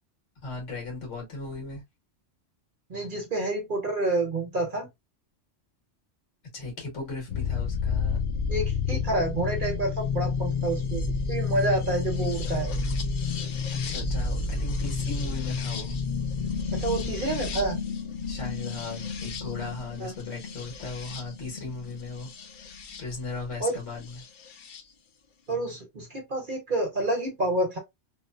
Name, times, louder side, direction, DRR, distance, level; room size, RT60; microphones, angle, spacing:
voice 1, 0.4-1.8 6.5-8.2 13.7-16.0 18.3-22.3 23.0-24.2, left 3 dB, 85° left, 1.6 m, -37 dB
voice 2, 2.9-4.9 8.5-12.7 16.7-17.8 20.0-20.1 23.6-23.8 25.5-27.8, right 2 dB, 45° right, 0.9 m, -28 dB
sound 1, 7.3-23.0 24.2-24.8, left 5 dB, 60° left, 0.5 m, -30 dB
3.1 x 2.0 x 2.3 m
omnidirectional pair, 1.3 m